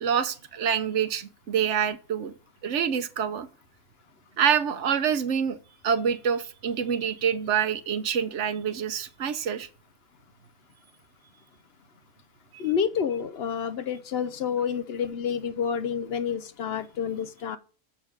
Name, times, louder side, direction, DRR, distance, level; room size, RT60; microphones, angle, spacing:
voice 1, 0.0-2.3 2.6-3.5 4.4-5.6 5.8-9.7, right 7 dB, 70° right, 1.0 m, -26 dB
voice 2, 12.6-17.6, left 7 dB, 60° left, 0.8 m, -29 dB
7.5 x 6.1 x 4.9 m
omnidirectional pair, 1.3 m